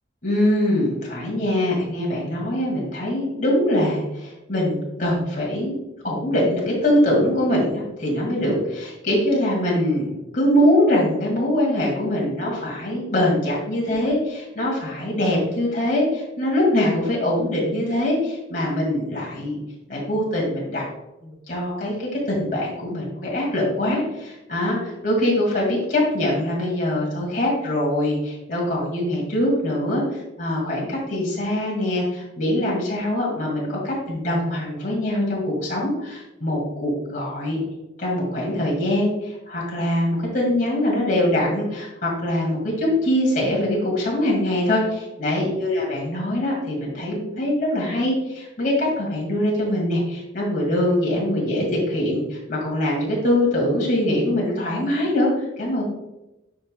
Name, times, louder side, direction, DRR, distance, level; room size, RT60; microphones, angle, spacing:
voice 1, 0.2-5.8 6.0-19.6 19.9-20.8 21.2-37.6 38.0-55.8, left 1 dB, 45° left, -4 dB, 2.2 m, -23 dB
9.4 x 5.8 x 2.2 m, 0.96 s
head